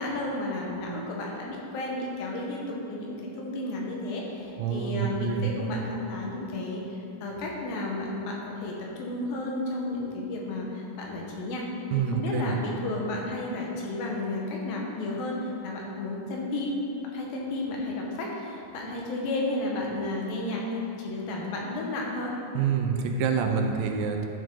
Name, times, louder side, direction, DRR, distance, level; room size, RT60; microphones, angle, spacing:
voice 1, 0.0-11.6 12.0-22.3, left 2 dB, 85° left, -2 dB, 3.1 m, -32 dB
voice 2, 4.6-5.5 11.9-12.6 22.5-24.3, right 6 dB, 85° right, 4 dB, 2.4 m, -27 dB
12.0 x 7.6 x 3.8 m, 2.8 s
omnidirectional pair, 4.0 m